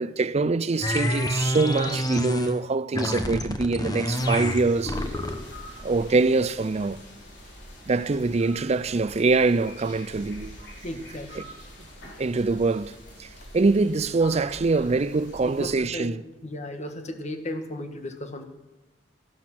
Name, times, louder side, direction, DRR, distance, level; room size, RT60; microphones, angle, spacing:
voice 1, 0.0-5.0 5.8-7.0 7.9-10.5 11.4-11.5 12.0-13.3 13.5-16.2, right 3 dB, 35° right, 0.5 m, -24 dB
sound 1, 0.8-2.6 2.9-5.5, equal, 20° left, 1.0 m, -27 dB
sound 2, 4.1-15.8, equal, 70° left, 4.3 m, -45 dB
voice 2, 10.8-11.5 15.5-16.1 16.4-18.4, left 1 dB, 40° left, 1.5 m, -35 dB
14.0 x 12.0 x 6.1 m
head